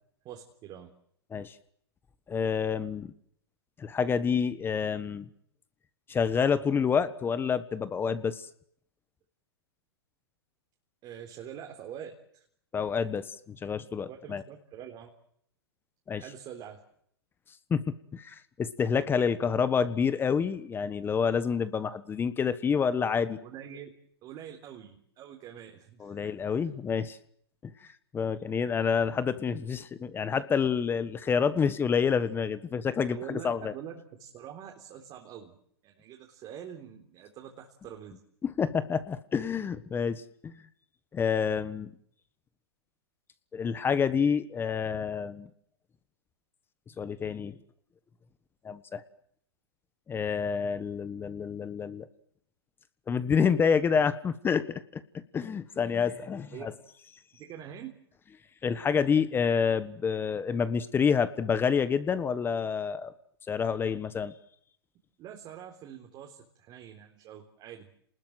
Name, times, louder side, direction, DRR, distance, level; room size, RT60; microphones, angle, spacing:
voice 1, 0.2-0.9 11.0-12.4 14.0-15.1 16.2-16.8 23.4-23.9 24.2-26.3 33.1-35.6 35.8-38.2 56.5-56.7 57.3-58.0 65.2-67.9, right 9 dB, 30° right, 2 dB, 3.7 m, -45 dB
voice 2, 2.3-3.1 3.8-5.3 6.1-8.5 12.7-14.4 16.1-16.2 17.7-23.4 26.0-27.2 27.6-27.7 28.1-33.7 38.4-40.5 41.1-41.9 43.5-45.5 47.0-47.6 48.6-49.0 50.1-52.1 53.1-56.7 58.6-63.1 63.5-64.3, left 6 dB, 15° left, 14 dB, 1.3 m, -28 dB
29.5 x 20.5 x 8.0 m, 0.67 s
hypercardioid pair, 125°, 14 cm